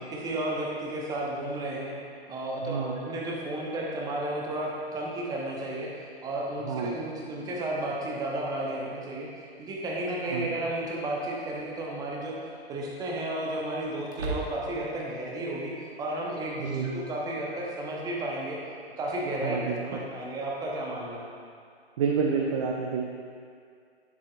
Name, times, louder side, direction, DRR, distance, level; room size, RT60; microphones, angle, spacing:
voice 1, 0.1-2.0 2.3-9.3 9.6-18.6 19.0-21.2, right 1 dB, 10° right, -2 dB, 0.9 m, -33 dB
voice 2, 2.6-3.0 6.6-7.0 10.3-10.5 16.6-16.9 19.4-20.0 22.0-23.0, right 6 dB, 30° right, 0 dB, 0.5 m, -29 dB
sound 1, 9.5-9.6 11.4-11.8 12.2-12.3 14.1-15.0, right 3 dB, 85° right, 1.4 m, -36 dB
10.0 x 7.1 x 2.5 m, 2.3 s
figure-of-eight pair, 120°, 33 cm